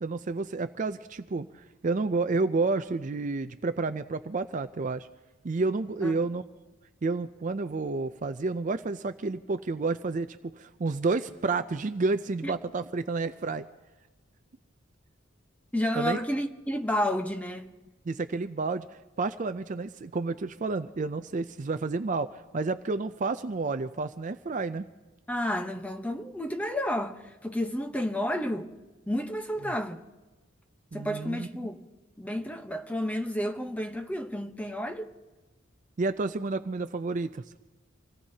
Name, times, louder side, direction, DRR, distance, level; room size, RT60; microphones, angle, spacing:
voice 1, 0.0-5.1 5.4-6.4 7.0-13.7 16.0-16.2 18.1-18.9 19.2-24.9 30.9-31.5 36.0-37.6, right 3 dB, 35° right, 0.4 m, -30 dB
voice 2, 15.7-17.7 25.3-28.7 29.1-30.0 30.9-31.8 32.2-35.1, left 1 dB, 5° left, 0.9 m, -31 dB
26.5 x 17.5 x 2.8 m
head